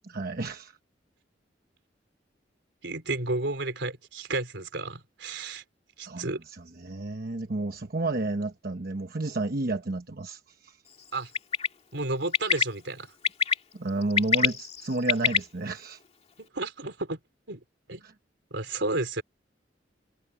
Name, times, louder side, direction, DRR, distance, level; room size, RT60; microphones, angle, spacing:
voice 1, 0.1-0.7 6.0-6.3 6.8-10.8 13.7-16.0 18.0-18.1, right 2 dB, 55° right, 1.0 m, -31 dB
voice 2, 2.8-5.6 6.0-6.4 11.1-11.3 11.9-13.2 16.4-17.2 17.5-17.6 17.9-18.0 18.5-19.2, right 2 dB, 80° right, 3.7 m, -32 dB
Bird, 11.3-11.7 12.3-12.6 13.2-13.5 14.0-15.4, left 6 dB, 35° left, 2.1 m, -23 dB
head